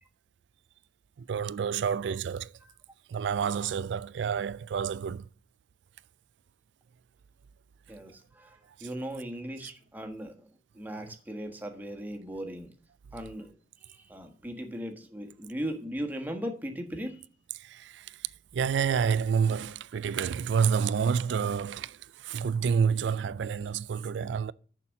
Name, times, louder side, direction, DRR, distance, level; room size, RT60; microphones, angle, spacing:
voice 1, 1.2-2.5 3.1-5.3 17.6-18.2 18.5-24.5, right 6 dB, 85° right, 0.4 m, -29 dB
voice 2, 7.9-10.5 10.7-12.7 13.1-13.5 13.8-17.2, equal, 10° right, 1.4 m, -38 dB
6.9 x 5.9 x 7.0 m
head